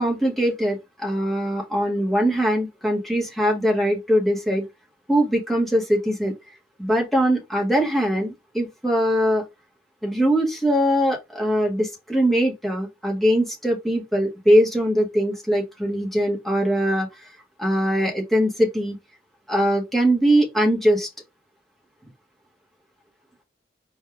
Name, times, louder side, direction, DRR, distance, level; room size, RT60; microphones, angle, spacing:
voice 1, 0.0-4.7 5.1-6.3 6.8-9.4 10.0-17.1 17.6-19.0 19.5-21.1, equal, ahead, 1.7 m, -21 dB
4.3 x 3.4 x 3.5 m
head